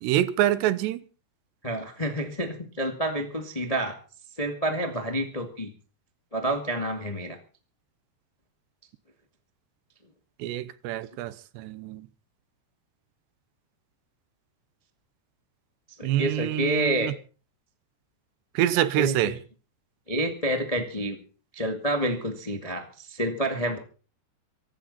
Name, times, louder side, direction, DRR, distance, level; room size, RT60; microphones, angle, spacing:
voice 1, 0.0-1.0 10.4-12.0 16.0-17.1 18.6-19.3, right 13 dB, 90° right, 3.1 m, -26 dB
voice 2, 1.6-4.0 4.4-5.7 6.3-7.4 16.0-17.1 18.9-19.4 20.1-21.2 21.5-23.8, right 1 dB, 45° left, 0.4 m, -28 dB
24.0 x 12.5 x 4.2 m
omnidirectional pair, 4.9 m